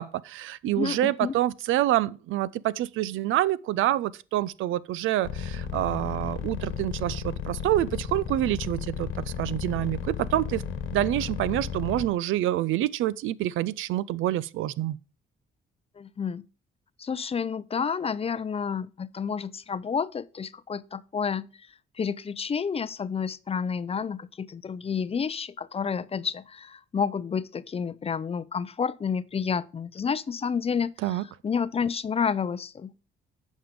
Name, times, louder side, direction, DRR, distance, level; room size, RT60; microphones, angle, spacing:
voice 1, 0.0-9.1 9.4-10.6 10.9-15.0 31.0-31.2, right 14 dB, 85° right, 0.5 m, -27 dB
voice 2, 0.7-1.4 16.0-16.5 17.0-33.0, left 6 dB, 30° left, 0.5 m, -30 dB
sound 1, 5.2-12.1, left 7 dB, 80° left, 1.5 m, -33 dB
9.0 x 5.4 x 5.1 m
cardioid pair, 90°, 20 cm